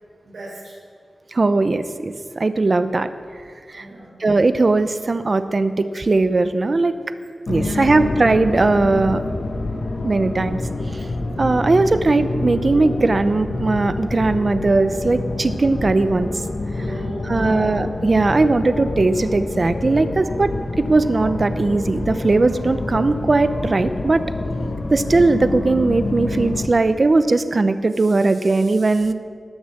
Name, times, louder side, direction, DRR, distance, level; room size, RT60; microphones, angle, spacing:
voice 1, 0.2-0.8 3.8-4.2 7.6-8.0 16.8-17.8, right 1 dB, 85° right, -7 dB, 4.1 m, -36 dB
voice 2, 1.3-3.1 3.7-3.9 4.2-6.9 7.5-9.2 10.0-10.6 10.9-11.0 11.4-16.3 17.2-20.5 20.8-24.2 24.9-29.1, right 3 dB, 50° right, 10 dB, 0.7 m, -19 dB
sound 1, 7.5-26.7, left 2 dB, 60° left, 1.0 m, -27 dB
19.5 x 6.9 x 6.6 m, 2.1 s
wide cardioid pair, 80°, 0 cm